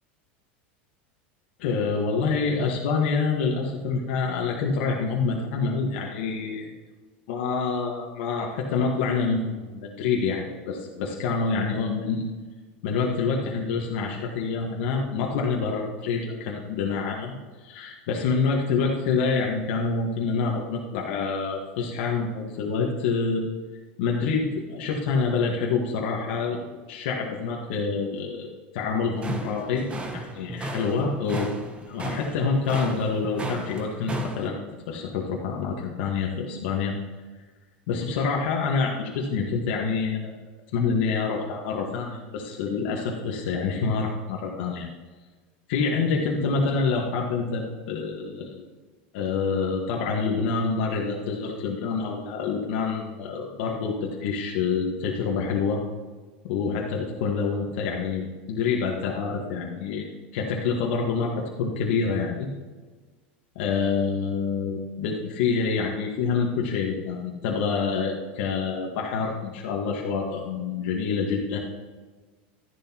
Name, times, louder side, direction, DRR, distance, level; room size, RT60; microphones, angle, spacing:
voice 1, 1.6-6.7 7.3-12.2 12.8-23.4 24.0-28.5 28.7-29.9 30.1-31.5 31.9-34.6 34.9-37.0 37.9-40.3 40.7-44.9 45.7-48.6 49.1-55.8 56.4-60.1 60.3-62.5 63.5-71.6, left 5 dB, 70° left, -1 dB, 1.5 m, -27 dB
sound 1, 29.2-34.5, right 1 dB, 20° right, 1.2 m, -34 dB
12.5 x 10.5 x 3.0 m, 1.4 s
supercardioid pair, 120°, 6 cm